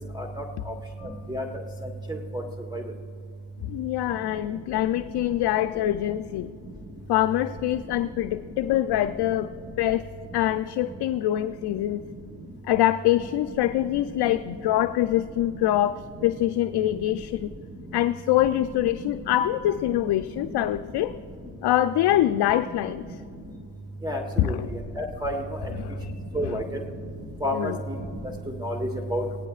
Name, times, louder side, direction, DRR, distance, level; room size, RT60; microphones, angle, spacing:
voice 1, 2.1-2.4 2.7-2.8 24.0-24.5 25.0-25.4 26.3-26.8 27.4-27.7 28.6-29.2, equal, 10° right, 3 dB, 1.4 m, -29 dB
voice 2, 3.6-6.5 7.1-9.5 9.8-10.1 10.3-12.0 12.6-17.5 17.9-21.1 21.6-23.1 24.4-24.7 25.8-26.1 26.4-26.6 27.5-27.8, left 13 dB, 60° left, 9 dB, 0.6 m, -24 dB
24.0 x 17.5 x 2.4 m, 2.4 s
supercardioid pair, 80°, 44 cm